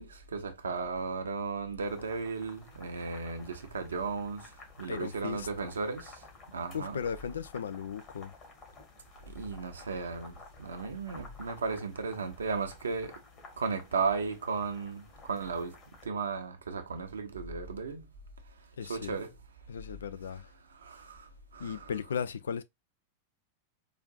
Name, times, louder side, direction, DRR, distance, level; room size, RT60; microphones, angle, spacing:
voice 1, 0.0-4.4 4.8-6.2 6.5-7.0 9.3-13.1 13.6-15.7 16.0-18.1 18.8-19.3 20.8-21.3 21.5-21.9, right 4 dB, 70° right, 0.8 m, -35 dB
sound 1, 1.8-16.1, left 3 dB, 30° left, 1.5 m, -54 dB
voice 2, 4.9-5.5 6.7-8.3 18.8-19.2 19.7-20.5 21.6-22.6, left 7 dB, 65° left, 0.4 m, -36 dB
4.9 x 2.6 x 2.4 m
figure-of-eight pair, 90°, 0 cm